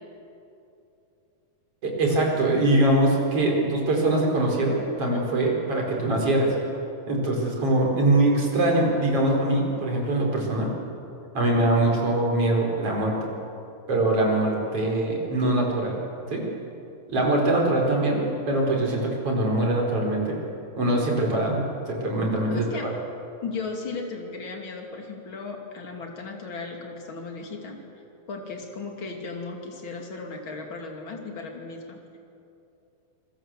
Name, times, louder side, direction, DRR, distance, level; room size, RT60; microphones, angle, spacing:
voice 1, 1.8-6.5 7.1-10.7 11.3-13.3 13.9-16.0 16.3-16.4 17.1-20.4 20.8-22.6, right 2 dB, 40° right, -1 dB, 5.2 m, -23 dB
voice 2, 22.5-22.9 23.4-27.8 28.3-32.2, left 4 dB, 35° left, 2 dB, 3.1 m, -36 dB
28.5 x 21.0 x 7.7 m, 2.7 s
omnidirectional pair, 4.2 m